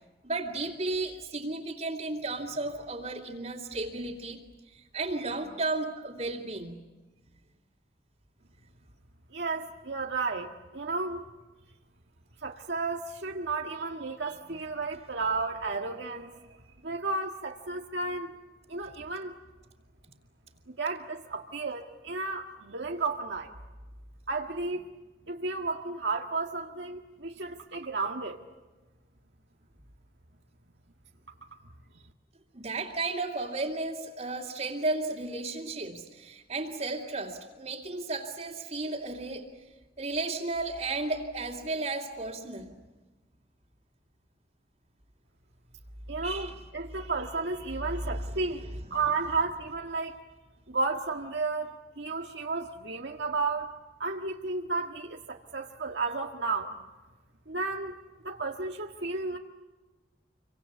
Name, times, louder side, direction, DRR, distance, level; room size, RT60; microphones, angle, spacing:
voice 1, 0.2-4.4 4.7-6.8 32.5-39.5 40.0-42.7 46.2-46.6, right 2 dB, 40° right, -4 dB, 2.8 m, -34 dB
voice 2, 9.3-11.2 12.4-16.6 16.8-18.4 18.7-19.3 20.8-23.5 24.3-24.9 25.3-28.4 31.5-31.6 46.1-50.1 50.7-53.7 54.0-56.7 57.5-57.9 58.2-59.4, right 3 dB, 75° right, 2 dB, 1.7 m, -33 dB
28.0 x 24.5 x 8.4 m, 1.2 s
head